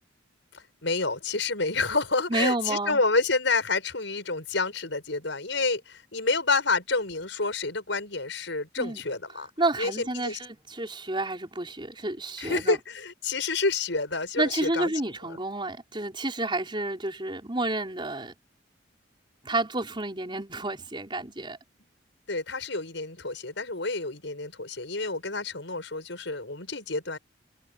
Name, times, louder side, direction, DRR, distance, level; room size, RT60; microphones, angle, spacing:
voice 1, 0.5-9.5 9.8-10.4 12.4-14.9 15.2-15.4 22.3-27.2, left 3 dB, 75° left, 6.4 m, -29 dB
voice 2, 2.3-3.0 8.8-9.0 9.6-12.8 14.4-18.3 19.4-21.6, right 2 dB, 25° right, 5.4 m, -30 dB
head